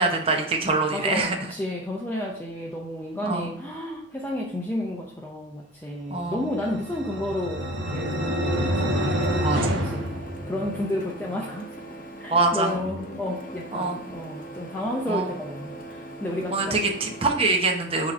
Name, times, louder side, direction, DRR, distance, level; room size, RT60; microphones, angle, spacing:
voice 1, 0.0-1.4 3.2-3.5 6.1-6.4 9.4-9.6 12.3-12.7 13.7-14.0 15.1-15.3 16.5-18.1, right 3 dB, 30° right, 2 dB, 0.8 m, -24 dB
voice 2, 0.9-7.6 7.9-10.1 10.4-11.7 12.2-16.9, left 1 dB, 10° left, -3 dB, 0.6 m, -32 dB
sound 1, 6.4-11.0, equal, 70° right, 1.3 m, -27 dB
Printer, 8.5-17.5, right 1 dB, 45° left, 0.8 m, -40 dB
6.2 x 2.9 x 5.1 m, 0.63 s
head